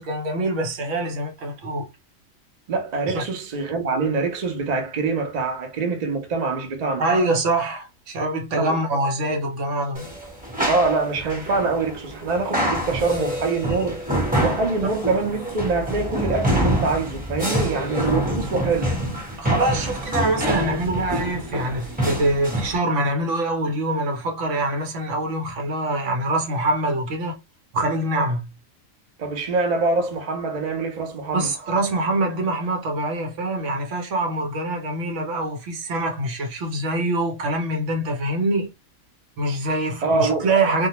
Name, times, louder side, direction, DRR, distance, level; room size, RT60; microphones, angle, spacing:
voice 1, 0.0-1.9 3.1-3.2 7.0-10.1 14.8-14.9 19.4-27.4 27.7-28.5 31.3-38.7 39.4-40.9, right 2 dB, 65° right, 0.9 m, -24 dB
voice 2, 2.7-7.0 8.6-8.7 10.7-14.0 14.4-19.0 29.2-31.5 40.0-40.5, right 3 dB, 50° right, 0.5 m, -24 dB
sound 1, 9.9-22.8, equal, 10° right, 0.8 m, -26 dB
2.3 x 2.1 x 2.8 m
omnidirectional pair, 1.4 m